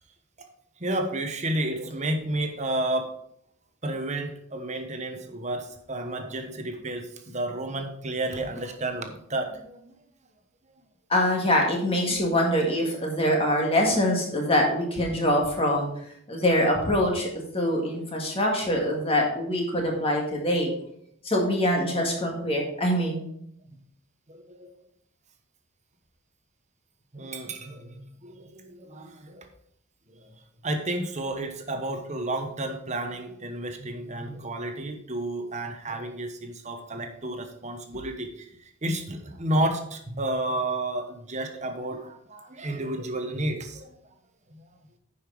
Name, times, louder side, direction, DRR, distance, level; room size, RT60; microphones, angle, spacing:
voice 1, 0.8-3.1 3.8-9.9 24.3-24.7 27.1-29.5 30.1-30.3 30.6-43.9 44.5-44.7, right 1 dB, 35° right, 6 dB, 1.1 m, -31 dB
voice 2, 11.1-15.9 16.3-20.7 21.2-23.3, left 1 dB, 25° left, 0 dB, 1.9 m, -24 dB
9.9 x 5.7 x 5.0 m, 0.70 s
head